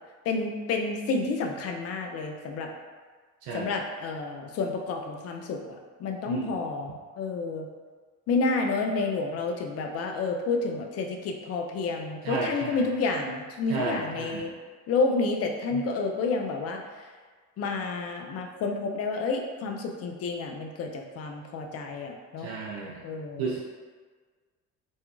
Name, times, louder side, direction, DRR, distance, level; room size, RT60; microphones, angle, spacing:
voice 1, 0.3-2.7 3.5-7.7 8.3-14.5 14.9-16.8 17.6-22.5 23.0-23.5, left 3 dB, 40° left, 2 dB, 0.4 m, -30 dB
voice 2, 3.4-3.7 6.3-6.5 12.2-12.9 13.7-14.5 15.7-15.8 22.4-23.0 23.4-23.6, right 4 dB, 60° right, -4 dB, 0.5 m, -33 dB
2.7 x 2.3 x 2.3 m, 1.5 s
hypercardioid pair, 55°, 40 cm